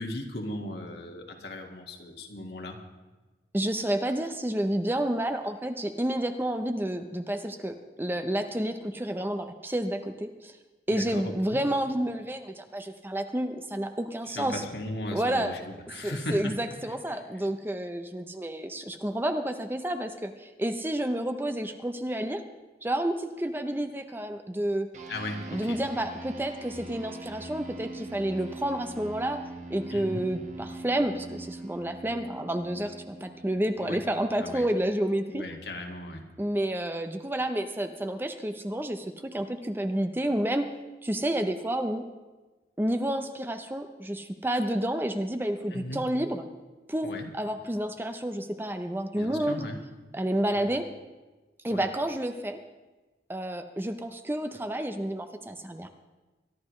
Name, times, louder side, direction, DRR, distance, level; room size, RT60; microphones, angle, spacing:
voice 1, 0.0-2.8 10.9-11.6 14.3-16.6 17.1-17.4 25.1-25.8 29.9-30.3 33.8-34.0 34.4-34.6 35.3-36.3 45.7-46.0 47.0-47.3 49.1-49.8 50.5-50.7 51.7-51.8, left 1 dB, 70° left, 2 dB, 1.9 m, -37 dB
voice 2, 3.5-10.6 10.9-14.6 15.1-15.5 16.0-22.4 22.8-24.9 25.5-29.4 29.7-35.4 36.4-40.7 41.0-42.0 42.8-46.4 46.9-49.7 50.1-50.9 51.6-52.6 53.3-55.9, right 1 dB, 10° right, 7 dB, 0.6 m, -30 dB
sound 1, 24.9-34.7, right 2 dB, 40° right, 1.4 m, -43 dB
23.5 x 12.0 x 3.2 m, 1.2 s
head